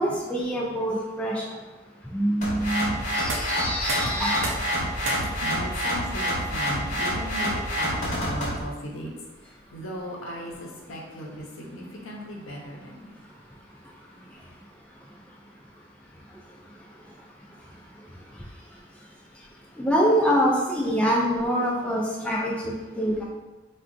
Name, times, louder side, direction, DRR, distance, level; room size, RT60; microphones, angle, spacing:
voice 1, 0.0-1.4 2.1-4.5 19.8-23.3, equal, 5° left, -4 dB, 0.3 m, -25 dB
sound 1, 2.4-8.6, equal, 35° left, 0.8 m, -28 dB
sound 2, 3.3-14.8, right 2 dB, 80° right, 0.6 m, -41 dB
voice 2, 4.5-9.1 9.4-13.1, equal, 80° left, -2 dB, 0.7 m, -38 dB
3.7 x 2.2 x 2.5 m, 1.2 s
head